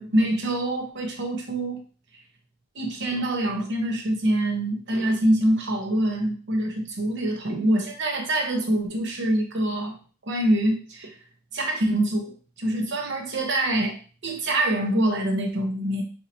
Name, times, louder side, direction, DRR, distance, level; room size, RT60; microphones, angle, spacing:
voice 1, 0.0-1.8 2.7-10.0 10.3-11.2 11.5-14.0 14.2-16.0, right 1 dB, 55° right, 2 dB, 0.9 m, -25 dB
4.5 x 2.9 x 2.6 m, 0.38 s
head